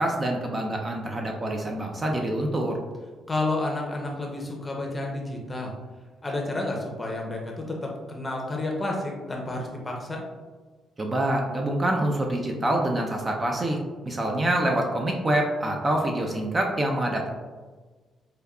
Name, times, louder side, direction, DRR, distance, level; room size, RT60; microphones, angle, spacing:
voice 1, 0.0-2.8 11.0-13.8 14.1-17.3, right 1 dB, 25° right, 1 dB, 0.4 m, -26 dB
voice 2, 3.3-5.7 6.2-10.2, left 2 dB, 20° left, 0 dB, 0.6 m, -30 dB
5.0 x 2.2 x 2.3 m, 1.4 s
cardioid pair, 90°, 0 cm